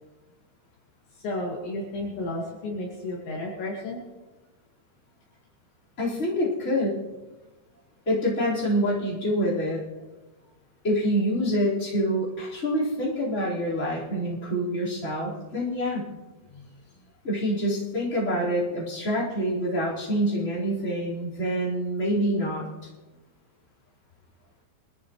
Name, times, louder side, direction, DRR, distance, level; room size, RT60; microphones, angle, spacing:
voice 1, 1.2-4.0 16.5-16.6, left 2 dB, 65° left, -3 dB, 4.4 m, -32 dB
voice 2, 6.0-7.0 8.1-9.8 10.8-16.1 17.2-22.7, equal, 15° left, -8 dB, 4.2 m, -26 dB
24.0 x 14.5 x 3.2 m, 1.2 s
omnidirectional pair, 5.8 m